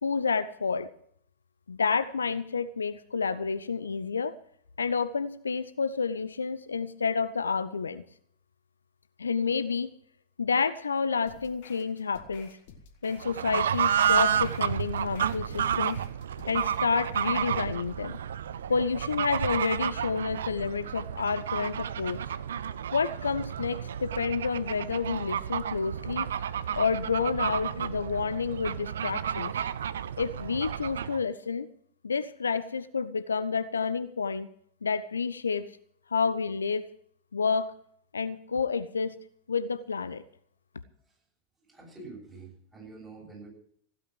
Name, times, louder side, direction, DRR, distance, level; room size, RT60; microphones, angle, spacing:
voice 1, 0.0-0.9 1.7-4.3 4.8-8.0 9.2-9.9 10.4-12.6 13.0-16.0 16.5-18.2 18.7-22.2 22.9-26.3 26.8-29.5 30.2-31.7 32.0-34.5 34.8-35.7 36.1-36.9 37.3-37.7 38.1-39.2 39.5-40.2, left 5 dB, 75° left, 14 dB, 0.6 m, -29 dB
sound 1, 11.3-16.9, left 5 dB, 50° left, 2.0 m, -52 dB
Fowl / Bird, 13.2-31.2, right 9 dB, 65° right, 0.6 m, -31 dB
voice 2, 41.6-43.5, right 3 dB, 15° right, -2 dB, 7.9 m, -46 dB
16.0 x 8.8 x 7.9 m, 0.65 s
figure-of-eight pair, 90°, 0 cm